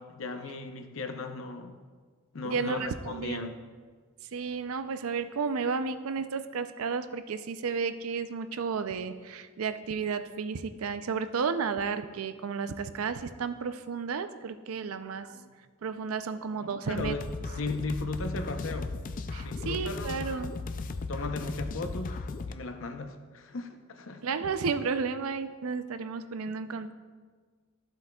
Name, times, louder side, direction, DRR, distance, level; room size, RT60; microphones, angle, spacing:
voice 1, 0.0-1.8 2.3-3.6 15.3-15.5 16.5-17.2 17.6-18.9 19.4-20.1 21.1-24.2 26.5-26.6, left 3 dB, 70° left, 7 dB, 0.7 m, -36 dB
voice 2, 2.4-3.5 4.3-15.4 15.8-17.2 19.3-20.5 24.2-26.9, right 5 dB, 90° right, 11 dB, 0.5 m, -32 dB
sound 1, 17.0-22.5, left 3 dB, 40° left, 0.3 m, -36 dB
14.0 x 7.8 x 2.3 m, 1.5 s
head